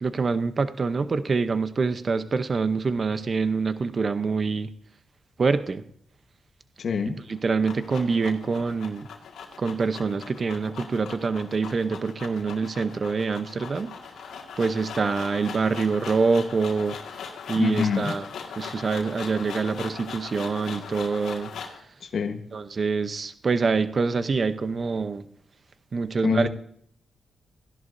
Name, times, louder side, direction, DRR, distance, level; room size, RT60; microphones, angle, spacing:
voice 1, 0.0-4.7 5.4-5.8 7.1-9.1 9.6-13.9 14.6-16.9 17.5-18.3 18.6-21.5 22.5-25.2 25.9-26.5, right 4 dB, 45° right, 12 dB, 0.8 m, -25 dB
voice 2, 6.8-7.2 17.6-18.1 22.0-22.4 26.2-26.5, left 6 dB, 65° left, 6 dB, 1.3 m, -25 dB
sound 1, 7.2-21.8, left 6 dB, 85° left, 1.9 m, -40 dB
16.0 x 11.0 x 2.7 m, 0.64 s
cardioid pair, 65°, 0 cm